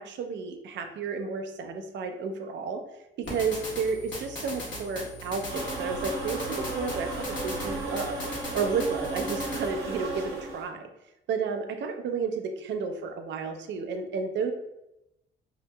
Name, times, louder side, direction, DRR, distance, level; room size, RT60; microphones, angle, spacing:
voice 1, 0.0-2.8 3.2-8.2 8.5-10.8 11.3-14.5, right 5 dB, 65° right, 5 dB, 0.5 m, -32 dB
sound 1, 3.2-9.7, left 1 dB, 70° left, 1.1 m, -39 dB
sound 2, 5.5-10.7, right 2 dB, 85° right, 0.9 m, -34 dB
2.8 x 2.6 x 2.2 m, 0.88 s
cardioid pair, 90°, 20 cm